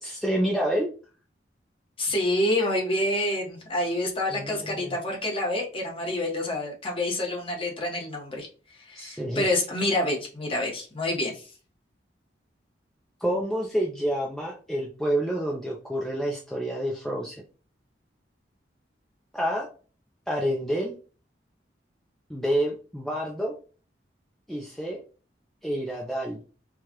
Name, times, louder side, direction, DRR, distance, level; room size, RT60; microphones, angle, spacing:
voice 1, 0.0-0.9 4.3-5.0 8.9-9.5 13.2-17.4 19.3-19.7 20.3-20.9 22.3-23.5 24.5-25.0 25.6-26.4, right 1 dB, ahead, -2 dB, 0.5 m, -28 dB
voice 2, 2.0-8.5 8.8-11.5, left 1 dB, 30° left, -1 dB, 1.1 m, -27 dB
4.7 x 2.3 x 2.9 m, 0.37 s
head